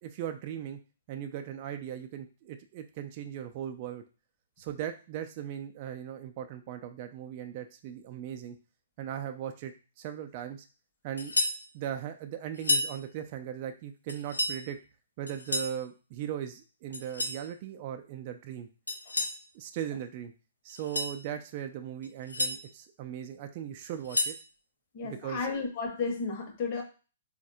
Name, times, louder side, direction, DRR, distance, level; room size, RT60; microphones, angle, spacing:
voice 1, 0.0-0.8 1.1-4.0 4.6-8.6 9.0-10.7 11.0-11.3 11.7-14.8 15.2-18.7 19.5-20.3 20.6-24.3 25.0-25.4, right 10 dB, 40° right, 6 dB, 0.3 m, -38 dB
sound 1, 11.2-11.6 12.5-12.9 14.1-14.6 15.3-15.8 16.9-17.4 18.9-19.4 20.7-21.2 22.0-22.5 23.8-24.4, left 2 dB, 85° left, 0.6 m, -30 dB
voice 2, 24.9-26.8, left 4 dB, 35° left, 3 dB, 0.8 m, -33 dB
3.9 x 2.1 x 2.6 m, 0.34 s
figure-of-eight pair, 120°, 0 cm